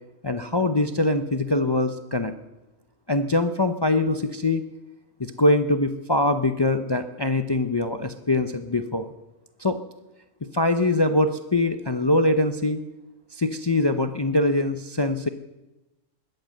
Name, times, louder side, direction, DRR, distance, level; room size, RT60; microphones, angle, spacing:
voice 1, 0.2-2.3 3.1-4.6 5.2-9.1 9.6-9.8 10.5-12.8 13.3-15.3, left 2 dB, 25° left, 8 dB, 0.6 m, -23 dB
20.5 x 7.9 x 7.7 m, 1.0 s
omnidirectional pair, 1.3 m